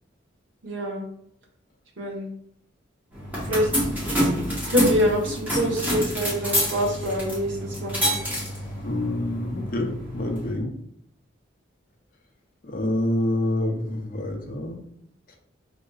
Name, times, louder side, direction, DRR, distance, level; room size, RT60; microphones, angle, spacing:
voice 1, 0.6-1.0 2.0-2.3 3.4-3.9 4.7-8.2, equal, 75° right, -2 dB, 1.0 m, -25 dB
sound 1, 3.1-10.5, equal, 10° right, 1.0 m, -28 dB
voice 2, 8.8-10.7 12.6-14.8, left 1 dB, 45° left, 2 dB, 0.6 m, -27 dB
4.2 x 2.9 x 2.3 m, 0.69 s
head